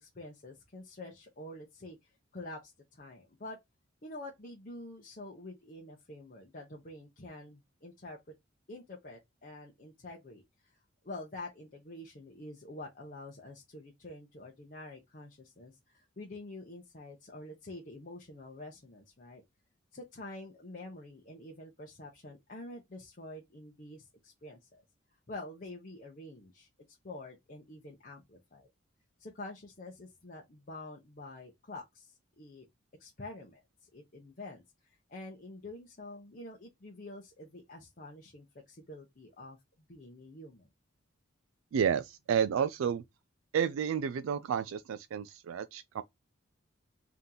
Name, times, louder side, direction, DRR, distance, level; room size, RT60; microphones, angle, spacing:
voice 1, 0.0-3.6 4.0-8.2 8.7-10.8 11.0-19.4 19.9-24.8 25.3-28.7 29.2-32.7 33.0-33.6 33.9-39.6 39.9-40.7, left 2 dB, 40° left, 0.8 m, -47 dB
voice 2, 41.7-43.0 43.5-46.0, right 7 dB, 85° right, 0.3 m, -31 dB
3.5 x 2.9 x 3.8 m
head